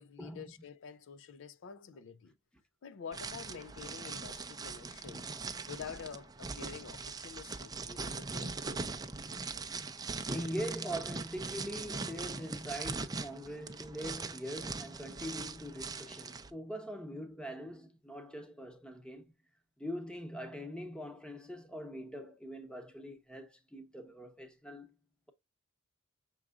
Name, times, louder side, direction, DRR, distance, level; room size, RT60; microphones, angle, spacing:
voice 1, 0.0-2.3 2.8-5.4 5.7-8.6, left 6 dB, 65° left, 0.4 m, -48 dB
sound 1, 3.1-16.5, right 4 dB, 20° right, 0.5 m, -41 dB
voice 2, 10.3-19.3 19.8-24.9, equal, 5° left, 0.8 m, -42 dB
6.0 x 3.8 x 2.3 m
head